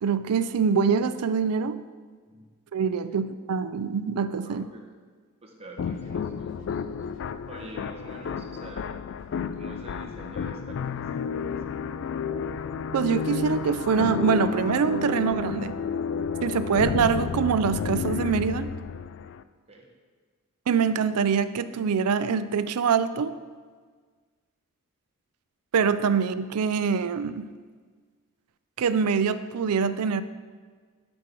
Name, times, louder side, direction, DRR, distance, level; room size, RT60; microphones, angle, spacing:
voice 1, 0.0-1.8 2.7-4.7 12.9-15.8 16.4-18.7 20.7-23.3 25.7-27.5 28.8-30.2, right 6 dB, 90° right, 13 dB, 0.4 m, -24 dB
voice 2, 4.4-4.8 5.4-7.1 7.5-9.0 9.5-11.4 19.7-19.9, right 1 dB, 25° right, 0 dB, 1.2 m, -46 dB
sound 1, 5.8-19.4, left 6 dB, 55° left, 0.3 m, -31 dB
12.5 x 5.4 x 4.5 m, 1.6 s
head